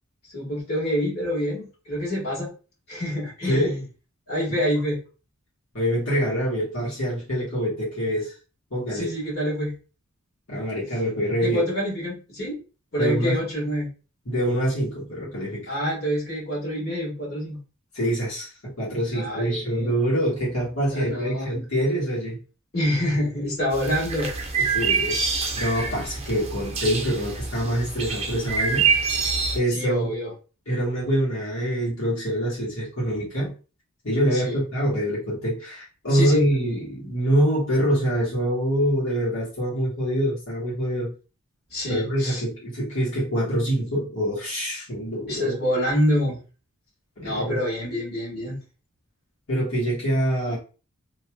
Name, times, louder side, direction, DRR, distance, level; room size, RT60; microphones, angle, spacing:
voice 1, 0.3-2.5 2.9-3.8 4.3-5.0 8.9-9.7 11.4-12.6 12.9-13.9 15.7-17.6 19.1-19.9 20.9-21.5 22.7-25.0 29.7-30.3 34.3-34.6 36.1-36.5 41.7-42.4 45.3-46.4 47.2-48.6, equal, 50° left, -5 dB, 1.7 m, -27 dB
voice 2, 5.7-8.3 8.7-9.1 10.5-11.6 13.0-13.4 14.2-15.7 17.9-22.4 24.7-28.9 29.5-30.1 30.7-33.5 34.0-41.1 41.9-45.6 47.2-47.6 49.5-50.6, equal, 90° left, -6 dB, 1.6 m, -25 dB
sound 1, 23.7-29.6, right 5 dB, 30° right, 0.6 m, -26 dB
3.0 x 2.9 x 2.3 m, 0.34 s
head